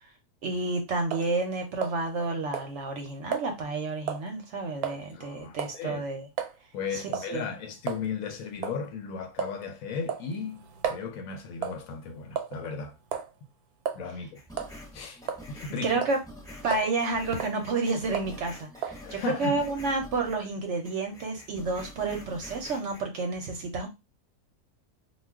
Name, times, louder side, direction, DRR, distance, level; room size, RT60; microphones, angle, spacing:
voice 1, 0.4-6.3 6.9-7.4 15.8-16.2 16.6-23.9, right 3 dB, 60° right, 0.8 m, -30 dB
sound 1, 1.1-1.3 1.8-2.3 2.5-2.7 3.3-3.5 4.1-4.3 4.8-5.0 5.6-5.8 6.4-6.5 7.1-7.3 7.9-8.0 8.6-8.8 9.4-9.6 10.1-11.1 11.6-11.8 12.4-12.7 13.1-13.3 13.9-14.0 14.5-14.7 15.3-15.7 16.0-16.2 16.7-16.9 17.3-17.6 18.1-18.4 18.8-19.0, right 8 dB, 85° right, 1.1 m, -33 dB
voice 2, 4.9-6.0 6.7-13.0 13.9-14.4 14.9-15.2 15.5-16.0 19.0-19.6, left 5 dB, 70° left, 0.9 m, -36 dB
sound 2, 14.3-20.5 20.8-23.0, left 1 dB, 5° left, 0.6 m, -47 dB
2.3 x 2.3 x 3.3 m
omnidirectional pair, 1.5 m